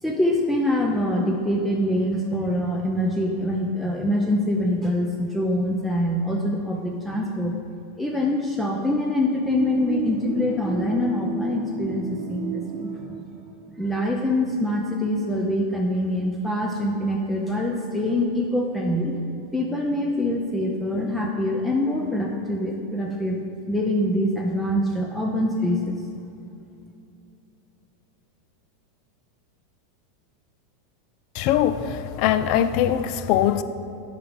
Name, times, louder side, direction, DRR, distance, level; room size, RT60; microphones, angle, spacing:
voice 1, 0.0-7.6 8.0-13.2 13.7-19.1 19.5-23.4 23.7-26.0, left 1 dB, 5° left, -1 dB, 0.6 m, -24 dB
sound 1, 9.4-13.8, right 5 dB, 50° right, 0.7 m, -33 dB
voice 2, 31.3-33.6, left 10 dB, 55° left, 12 dB, 0.4 m, -22 dB
7.8 x 5.0 x 5.2 m, 2.8 s
supercardioid pair, 125°, 0 cm